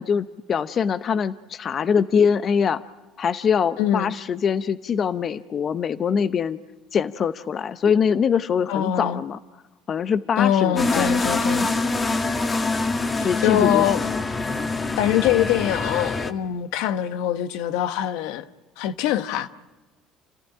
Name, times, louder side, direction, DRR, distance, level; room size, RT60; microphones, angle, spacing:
voice 1, 0.0-2.8 3.2-6.6 6.9-9.4 9.9-11.1 13.2-14.1, left 7 dB, 45° left, 0.8 m, -23 dB
voice 2, 3.8-4.1 8.7-9.2 10.4-11.7 13.1-14.0 15.0-18.4 18.8-19.5, left 11 dB, 80° left, 1.1 m, -23 dB
sound 1, 10.8-16.3, left 3 dB, 25° left, 1.7 m, -25 dB
29.5 x 14.0 x 10.0 m
supercardioid pair, 90°, 0 cm